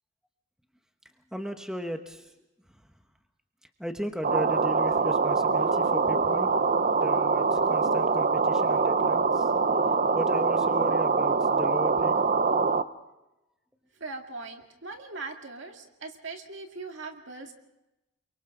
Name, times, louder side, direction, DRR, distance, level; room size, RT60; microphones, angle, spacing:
voice 1, 1.3-2.3 3.8-6.5 6.9-9.5 10.1-12.2, equal, 5° right, 5 dB, 1.1 m, -36 dB
sound 1, 4.2-12.8, right 4 dB, 40° right, 0.7 m, -24 dB
voice 2, 14.0-17.5, right 3 dB, 65° right, 4 dB, 2.2 m, -40 dB
29.5 x 23.5 x 3.9 m, 0.95 s
head